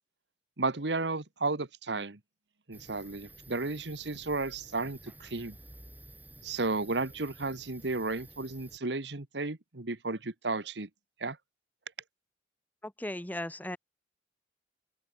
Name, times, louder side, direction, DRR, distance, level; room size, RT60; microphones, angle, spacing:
voice 1, 0.6-2.2 2.7-5.5 6.4-10.9 11.2-11.4, right 3 dB, 85° right, 1.6 m, -33 dB
sound 1, 2.7-8.8, right 2 dB, 10° right, 5.9 m, -52 dB
voice 2, 12.8-13.8, left 1 dB, 10° left, 1.1 m, -37 dB
open air
head